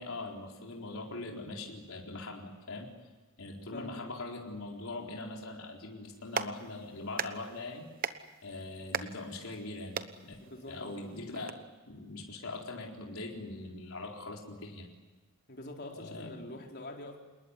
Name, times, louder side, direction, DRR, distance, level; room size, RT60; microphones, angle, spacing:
voice 1, 0.0-2.9 3.4-7.9 8.4-10.0 10.2-10.3 10.7-11.6 11.9-14.9 15.9-16.6, left 2 dB, 70° left, 0 dB, 4.3 m, -42 dB
voice 2, 3.7-4.1 10.4-11.0 15.5-17.2, left 1 dB, 50° left, 1 dB, 4.3 m, -45 dB
Clapping, 6.0-11.5, right 6 dB, 40° right, 1.1 m, -41 dB
27.5 x 20.5 x 9.8 m, 1.2 s
head